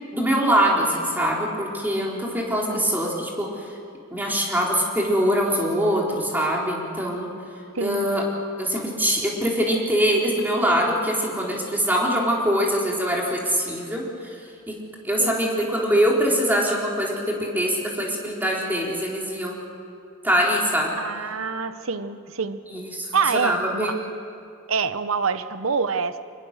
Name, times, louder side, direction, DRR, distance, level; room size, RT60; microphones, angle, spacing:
voice 1, 0.1-3.5 4.1-7.3 7.8-8.2 8.6-14.1 14.7-14.8 15.0-19.7 20.2-21.0 22.7-23.1 23.4-23.9, equal, 10° right, -2 dB, 3.7 m, -23 dB
voice 2, 7.7-8.1 15.2-15.4 21.0-22.6 23.1-24.0 24.7-26.2, right 5 dB, 75° right, 12 dB, 0.9 m, -26 dB
24.5 x 21.5 x 6.7 m, 2.5 s
head